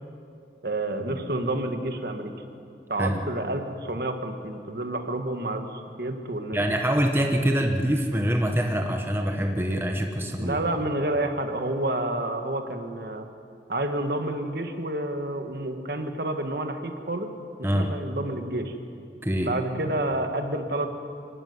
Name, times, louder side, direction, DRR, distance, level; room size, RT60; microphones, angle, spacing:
voice 1, 0.6-2.3 2.9-6.6 10.4-13.3 13.7-17.3 17.6-18.7 19.4-20.9, right 1 dB, 55° right, 6 dB, 1.8 m, -29 dB
voice 2, 6.5-10.6 17.6-17.9 19.2-19.5, equal, 15° right, 3 dB, 1.2 m, -25 dB
24.5 x 15.0 x 9.7 m, 2.4 s
head